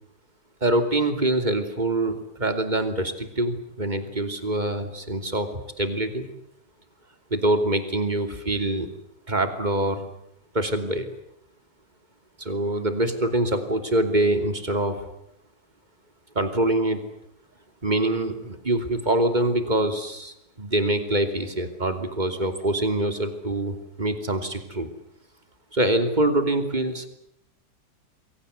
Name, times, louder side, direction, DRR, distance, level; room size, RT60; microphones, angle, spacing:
voice 1, 0.6-5.5 5.8-6.3 7.3-8.9 9.3-10.0 10.5-11.1 12.4-15.0 16.3-17.0 17.8-24.9 25.7-27.1, right 1 dB, 25° right, 7 dB, 3.1 m, -24 dB
29.0 x 22.5 x 8.1 m, 0.79 s
omnidirectional pair, 1.8 m